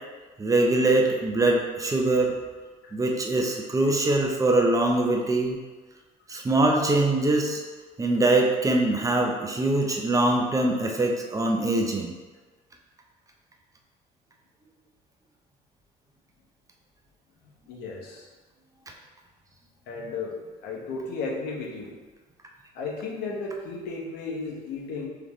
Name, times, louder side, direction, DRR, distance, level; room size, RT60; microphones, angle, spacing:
voice 1, 0.4-2.3 2.9-5.6 6.3-7.6 8.0-12.1, right 2 dB, 20° right, 1 dB, 0.5 m, -23 dB
voice 2, 17.4-18.3 19.9-21.9 22.7-25.1, left 3 dB, 80° left, -2 dB, 0.9 m, -34 dB
3.8 x 3.4 x 3.1 m, 1.3 s
cardioid pair, 110°, 17 cm